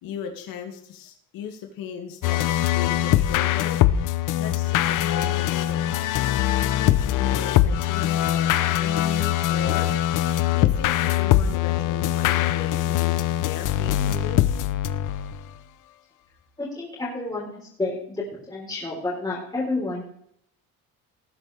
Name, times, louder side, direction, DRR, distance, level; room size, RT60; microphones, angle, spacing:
voice 1, 0.0-3.8 4.4-5.8 6.5-10.0 10.5-14.4, left 7 dB, 80° left, 2 dB, 2.6 m, -37 dB
sound 1, 2.2-15.5, left 12 dB, 65° left, 0.8 m, -22 dB
voice 2, 16.6-20.0, left 2 dB, 10° left, -7 dB, 4.2 m, -30 dB
19.0 x 9.3 x 3.5 m, 0.68 s
cardioid pair, 145°, 34 cm